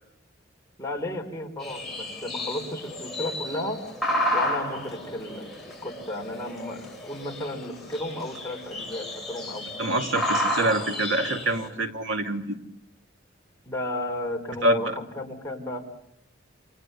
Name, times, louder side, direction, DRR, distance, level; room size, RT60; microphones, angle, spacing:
voice 1, 0.8-3.8 4.3-5.5 5.8-9.6 13.7-15.8, left 1 dB, 15° left, 1 dB, 4.0 m, -33 dB
sound 1, 1.6-11.7, left 1 dB, ahead, 7.1 m, -32 dB
voice 2, 9.8-12.6 14.6-14.9, right 1 dB, 75° right, 3 dB, 2.5 m, -25 dB
28.5 x 28.0 x 6.9 m, 0.79 s
head